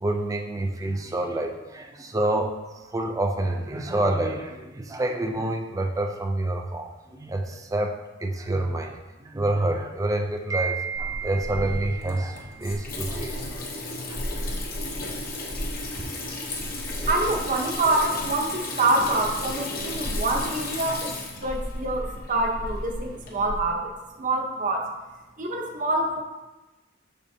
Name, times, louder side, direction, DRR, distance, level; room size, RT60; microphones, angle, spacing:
voice 1, 0.0-13.7 14.1-14.2 14.5-14.6 14.9-15.2 15.9-16.1 16.9-17.3, right 2 dB, 15° right, 3 dB, 0.4 m, -28 dB
Water tap faucet / Sink (filling or washing), 10.9-23.6, left 1 dB, 50° left, 1.1 m, -33 dB
voice 2, 17.1-23.9 24.2-24.8 25.4-26.2, right 2 dB, 40° right, 1 dB, 0.9 m, -26 dB
6.9 x 6.5 x 2.8 m, 1.1 s
head